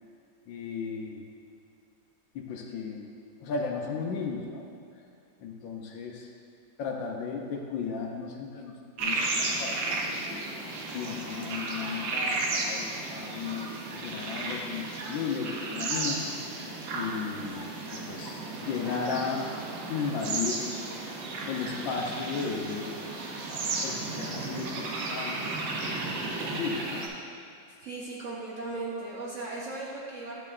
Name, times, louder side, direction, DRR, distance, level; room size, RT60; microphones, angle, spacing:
voice 1, 0.5-1.3 2.3-4.7 5.4-6.3 6.8-16.2 16.9-19.5 19.9-20.7 21.5-22.9 23.5-25.4 25.9-27.1, left 5 dB, 75° left, 1 dB, 1.4 m, -35 dB
sound 1, 9.0-27.1, right 3 dB, 85° right, 1.6 m, -34 dB
voice 2, 27.8-30.4, right 3 dB, 50° right, -5 dB, 1.0 m, -37 dB
10.5 x 6.6 x 2.5 m, 2.5 s
omnidirectional pair, 2.1 m